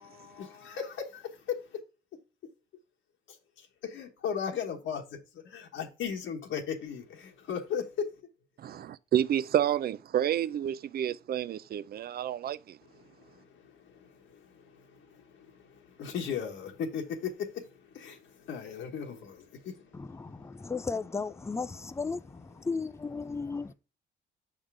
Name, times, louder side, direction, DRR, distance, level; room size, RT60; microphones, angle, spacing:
voice 1, 0.1-1.8 2.1-2.2 3.3-8.1 8.6-8.7 12.8-20.7, left 7 dB, 75° left, 1.3 m, -38 dB
voice 2, 8.6-12.8, right 10 dB, 50° right, 0.5 m, -29 dB
voice 3, 19.9-23.7, left 4 dB, 15° left, 0.4 m, -35 dB
6.5 x 3.7 x 4.7 m
cardioid pair, 90°, 20 cm